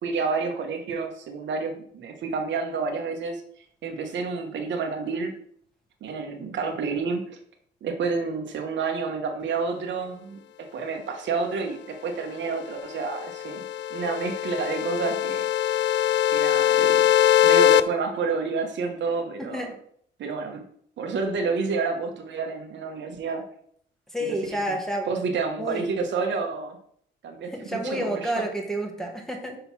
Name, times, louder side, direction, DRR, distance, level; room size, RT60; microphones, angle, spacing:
voice 1, 0.0-3.4 3.8-5.3 6.0-7.2 7.8-13.6 13.9-15.5 16.3-17.1 17.4-19.6 20.2-20.6 21.0-23.4 24.2-24.4 25.1-26.8 27.2-28.2, right 4 dB, 65° right, 4 dB, 1.1 m, -29 dB
sound 1, 12.9-17.8, left 11 dB, 65° left, 0.4 m, -22 dB
voice 2, 19.4-19.7 24.1-25.1 25.6-25.8 27.5-29.6, right 1 dB, ahead, 2 dB, 1.6 m, -29 dB
5.7 x 3.9 x 6.0 m, 0.64 s
cardioid pair, 90°, 20 cm